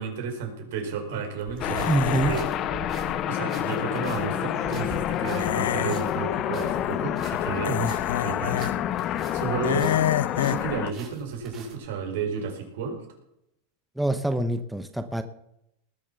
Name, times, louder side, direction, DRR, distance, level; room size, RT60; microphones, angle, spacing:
voice 1, 0.0-2.4 3.3-7.8 8.2-8.7 9.0-9.9 10.3-13.0, right 6 dB, 70° right, 4 dB, 4.8 m, -32 dB
sound 1, 1.5-9.5 9.8-11.7, right 4 dB, 35° right, 5.5 m, -43 dB
sound 2, 1.6-2.5 5.4-6.0 7.6-8.7 9.6-10.6, left 10 dB, 90° left, 0.4 m, -28 dB
sound 3, 1.6-10.9, left 11 dB, 40° left, 0.9 m, -28 dB
voice 2, 1.8-2.3 7.7-7.9 14.0-15.2, right 2 dB, 5° right, 8 dB, 0.9 m, -25 dB
19.5 x 7.2 x 6.9 m, 0.79 s
supercardioid pair, 130°, 0 cm